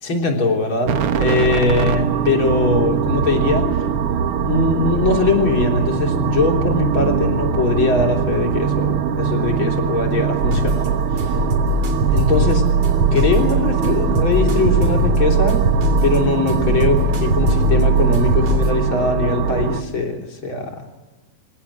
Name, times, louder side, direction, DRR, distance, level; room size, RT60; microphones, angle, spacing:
voice 1, 0.0-3.7 4.4-10.9 11.2-11.4 12.1-12.7 13.1-15.6 16.0-20.9, left 3 dB, 35° left, 3 dB, 3.9 m, -21 dB
sound 1, 0.9-19.8, right 7 dB, 60° right, 1.5 m, -22 dB
sound 2, 10.4-18.7, right 2 dB, 40° right, 4.4 m, -19 dB
26.5 x 18.0 x 9.8 m, 1.2 s
omnidirectional pair, 4.3 m